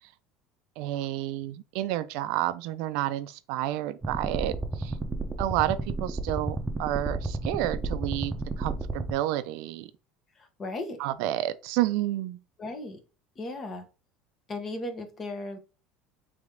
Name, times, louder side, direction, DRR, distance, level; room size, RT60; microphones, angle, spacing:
voice 1, 0.8-5.0 5.4-9.9 11.0-12.4, right 14 dB, 70° right, 0.4 m, -30 dB
sound 1, 4.0-9.1, right 2 dB, 15° right, 0.7 m, -32 dB
voice 2, 10.4-11.0 12.6-13.0 13.4-13.9 14.5-15.6, left 2 dB, 35° left, 1.1 m, -36 dB
3.4 x 3.1 x 3.7 m
supercardioid pair, 90°, 0 cm